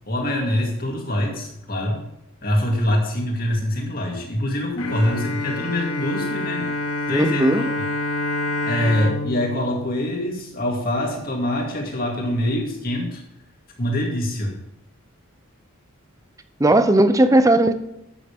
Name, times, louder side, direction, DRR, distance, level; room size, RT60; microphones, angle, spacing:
voice 1, 0.1-2.0 2.4-6.7 7.1-7.7 8.6-13.2 13.8-14.5, left 1 dB, 45° left, 2.4 m, -24 dB
Bowed string instrument, 4.8-11.0, left 2 dB, 85° left, 1.2 m, -28 dB
voice 2, 7.1-7.6 16.6-17.7, right 1 dB, 15° right, 0.5 m, -16 dB
11.5 x 8.8 x 3.6 m
head